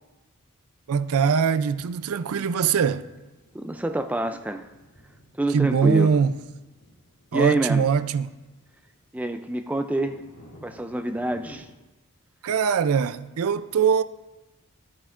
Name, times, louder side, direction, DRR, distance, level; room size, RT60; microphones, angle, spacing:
voice 1, 0.9-3.0 5.5-6.3 7.3-8.3 12.4-14.0, right 6 dB, 80° right, 0.4 m, -22 dB
sound 1, 1.5-11.6, equal, 80° left, 2.4 m, -55 dB
voice 2, 3.5-4.7 5.4-6.1 7.3-7.8 9.1-10.2 10.6-11.7, right 1 dB, 5° right, 0.3 m, -27 dB
12.5 x 8.7 x 2.5 m
head